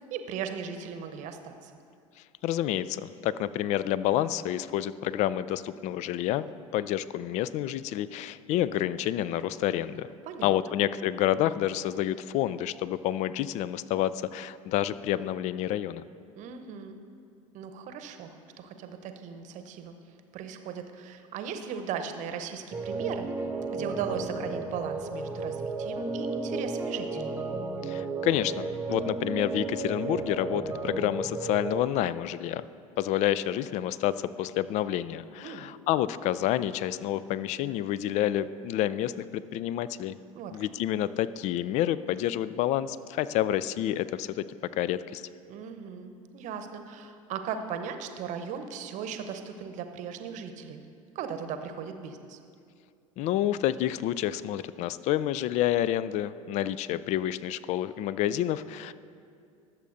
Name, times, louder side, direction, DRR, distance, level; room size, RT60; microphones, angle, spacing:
voice 1, 0.1-1.7 10.2-10.8 16.4-17.0 17.5-19.9 20.3-23.3 23.7-27.4 35.4-35.7 40.3-40.6 45.5-50.8 51.1-52.4, right 7 dB, 45° right, 7 dB, 0.9 m, -37 dB
voice 2, 2.4-6.5 6.7-10.1 10.4-16.0 27.8-32.6 33.0-40.2 40.5-44.4 44.8-45.2 53.2-58.9, left 12 dB, 40° left, 17 dB, 0.4 m, -29 dB
sound 1, 22.7-31.8, right 3 dB, 10° right, 0.6 m, -33 dB
21.5 x 7.2 x 2.6 m, 2.4 s
figure-of-eight pair, 70°, 18 cm